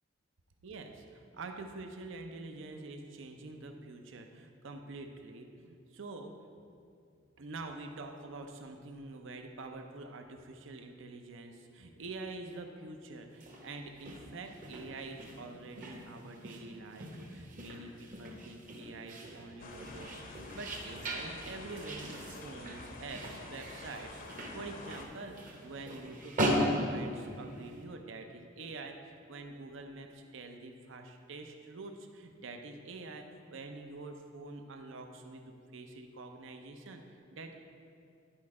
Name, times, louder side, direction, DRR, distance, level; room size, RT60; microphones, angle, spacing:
voice 1, 0.6-6.3 7.4-24.2 24.5-25.4 25.6-29.0 29.3-37.5, right 3 dB, 70° right, 4 dB, 0.6 m, -46 dB
sound 1, 13.3-27.8, equal, 45° right, 1.0 m, -39 dB
sound 2, 19.6-25.1, left 3 dB, 45° left, 0.6 m, -49 dB
10.5 x 4.3 x 4.8 m, 2.4 s
head